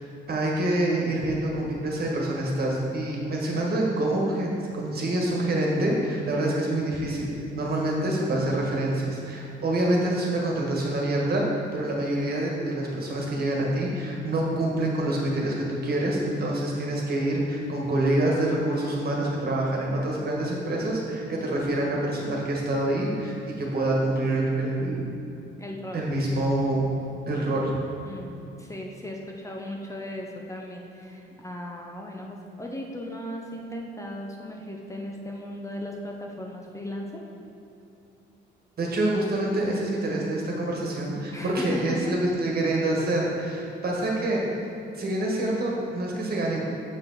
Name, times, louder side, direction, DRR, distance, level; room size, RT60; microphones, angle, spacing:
voice 1, 0.3-7.3 7.5-11.5 11.7-25.1 25.9-26.8 27.3-27.7 38.8-44.4 44.9-46.6, right 1 dB, 50° right, -2 dB, 1.5 m, -26 dB
voice 2, 25.6-26.5 28.0-37.2 41.3-42.1, equal, 15° left, 0 dB, 0.7 m, -37 dB
7.0 x 5.1 x 4.0 m, 2.8 s
cardioid pair, 90°, 20 cm